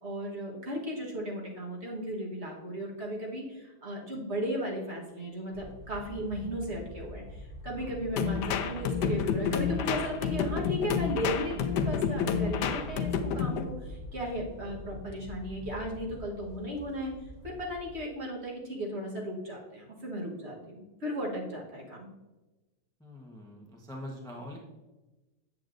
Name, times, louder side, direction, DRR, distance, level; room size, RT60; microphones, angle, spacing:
voice 1, 0.0-22.1, equal, 40° right, -2 dB, 1.5 m, -36 dB
sound 1, 5.5-18.0, left 1 dB, 60° left, 1.3 m, -45 dB
sound 2, 8.2-13.7, left 6 dB, 85° left, 1.2 m, -29 dB
voice 2, 23.0-24.6, left 1 dB, 5° left, -1 dB, 0.7 m, -43 dB
7.9 x 7.9 x 2.5 m, 1.1 s
omnidirectional pair, 1.8 m